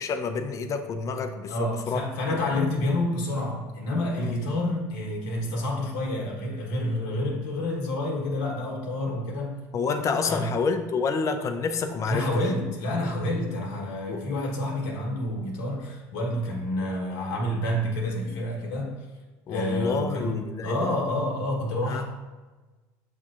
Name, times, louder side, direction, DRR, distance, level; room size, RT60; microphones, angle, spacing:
voice 1, 0.0-2.0 2.5-2.7 4.2-4.4 9.7-12.3 14.1-14.2 19.5-20.9 21.9-22.0, left 4 dB, 35° left, 6 dB, 0.5 m, -28 dB
voice 2, 1.5-9.6 10.3-10.6 12.1-18.9 19.5-22.0, left 1 dB, 75° left, -2 dB, 1.1 m, -28 dB
7.3 x 2.7 x 2.5 m, 1.2 s
supercardioid pair, 100°, 9 cm